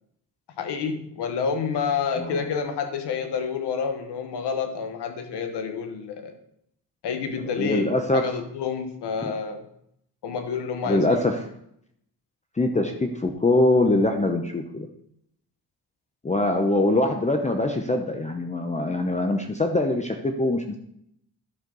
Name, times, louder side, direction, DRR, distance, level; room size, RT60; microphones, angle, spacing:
voice 1, 0.6-6.3 7.0-9.7 10.2-11.3, left 6 dB, 80° left, 7 dB, 1.3 m, -29 dB
voice 2, 7.6-8.2 10.9-11.4 12.6-14.9 16.2-20.8, left 2 dB, 15° left, 4 dB, 0.8 m, -23 dB
11.0 x 6.4 x 3.9 m, 0.73 s
cardioid pair, 95°, 40 cm